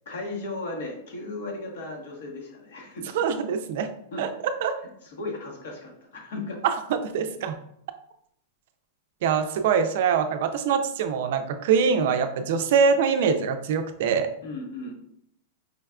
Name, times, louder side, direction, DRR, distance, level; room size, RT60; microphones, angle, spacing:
voice 1, 0.1-3.1 4.1-4.3 5.0-6.6 14.4-15.0, left 2 dB, 70° left, 1 dB, 1.0 m, -36 dB
voice 2, 3.1-3.9 4.2-4.3 4.6-4.7 6.9-7.5 9.2-14.3, right 6 dB, 55° right, 8 dB, 0.3 m, -23 dB
4.9 x 2.3 x 2.2 m, 0.71 s
supercardioid pair, 165°, 0 cm